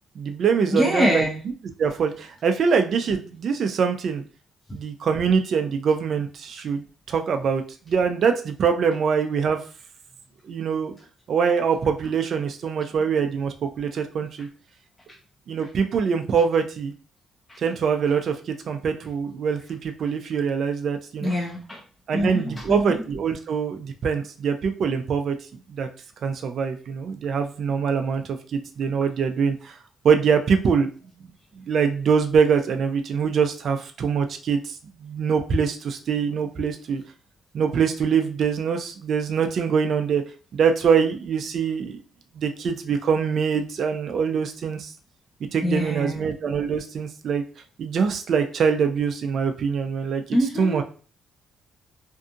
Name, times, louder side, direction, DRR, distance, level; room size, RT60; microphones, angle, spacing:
voice 1, 0.2-1.3 1.8-4.2 4.7-9.6 10.5-11.0 11.3-14.5 15.5-16.9 17.6-21.3 22.1-25.3 25.8-25.9 26.2-29.8 30.0-30.9 31.7-34.8 35.0-37.0 37.5-40.2 40.5-42.0 42.4-44.9 45.5-47.4 47.8-50.8, right 6 dB, 60° right, 6 dB, 0.4 m, -24 dB
voice 2, 0.7-1.4 17.5-17.6 21.2-21.8 22.1-23.0 45.6-46.2 50.3-50.8, equal, 10° left, -1 dB, 0.7 m, -24 dB
2.6 x 2.4 x 2.5 m, 0.38 s
cardioid pair, 90°, 0 cm